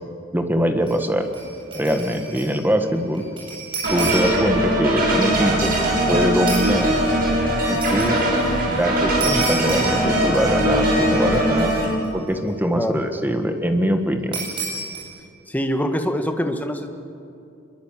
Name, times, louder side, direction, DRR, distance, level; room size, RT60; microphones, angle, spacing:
voice 1, 0.3-1.3 1.7-3.2 3.9-5.7 6.1-6.9 7.7-8.2 8.7-11.7 12.1-14.4, equal, 10° right, 6 dB, 1.5 m, -22 dB
sound 1, 0.8-1.0 1.3-2.6 2.9-4.5 6.5-6.7 7.8-8.1 9.2-10.6 10.9-11.0 11.3-12.1 14.3-15.0, right 3 dB, 25° right, 7.8 m, -30 dB
sound 2, 3.8-11.8, right 1 dB, 45° right, 7.2 m, -20 dB
voice 2, 15.5-16.9, equal, 10° left, 5 dB, 1.6 m, -24 dB
25.5 x 22.0 x 7.4 m, 2.7 s
head